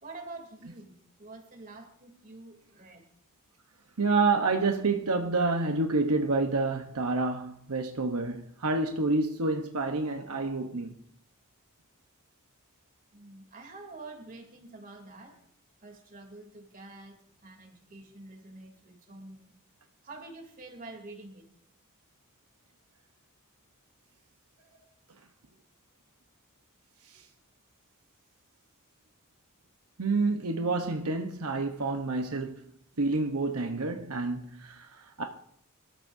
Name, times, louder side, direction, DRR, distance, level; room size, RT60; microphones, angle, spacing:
voice 1, 0.0-3.0 13.1-15.4 15.8-19.6 20.0-21.5 27.1-27.2, right 2 dB, 40° right, 3.2 m, -47 dB
voice 2, 4.0-10.9 27.1-27.2 30.0-32.6 33.0-35.2, right 3 dB, 85° right, 1.1 m, -28 dB
25.5 x 13.5 x 2.7 m
head